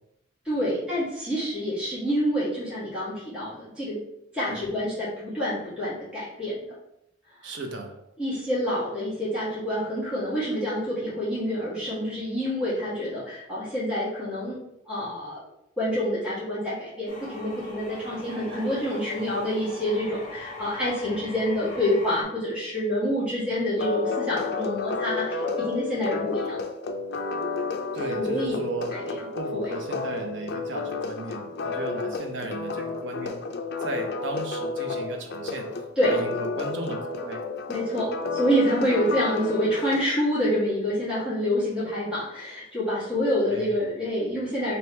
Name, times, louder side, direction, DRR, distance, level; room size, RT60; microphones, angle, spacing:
voice 1, 0.4-4.0 4.3-6.6 7.4-7.5 8.2-14.6 14.9-15.4 15.8-26.6 28.1-28.6 28.9-29.2 29.5-29.7 35.9-36.1 37.7-44.8, equal, 5° right, -11 dB, 1.6 m, -27 dB
voice 2, 7.4-7.9 27.9-28.9 29.3-33.4 33.8-35.7 36.1-37.4 43.5-43.8, right 3 dB, 70° right, 4 dB, 0.8 m, -35 dB
sound 1, 17.1-22.2, left 1 dB, 45° left, 1.2 m, -40 dB
sound 2, 23.8-40.0, left 4 dB, 60° left, 0.4 m, -31 dB
3.3 x 2.9 x 4.2 m, 0.82 s
head